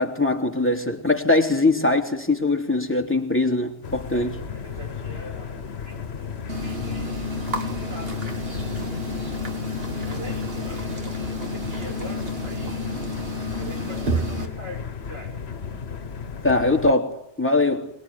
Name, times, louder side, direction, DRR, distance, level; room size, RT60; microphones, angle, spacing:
voice 1, 0.0-4.3 16.4-17.9, left 2 dB, 10° left, 3.0 m, -22 dB
sound 1, 3.8-16.9, left 6 dB, 70° left, 1.5 m, -34 dB
voice 2, 4.1-5.6 5.8-6.3 6.6-7.3 7.8-8.3 10.1-10.9 11.3-12.8 13.6-15.4, equal, 85° right, 7.2 m, -42 dB
sound 2, 6.5-14.5, left 1 dB, 60° right, 2.7 m, -30 dB
24.5 x 22.0 x 9.7 m
omnidirectional pair, 1.1 m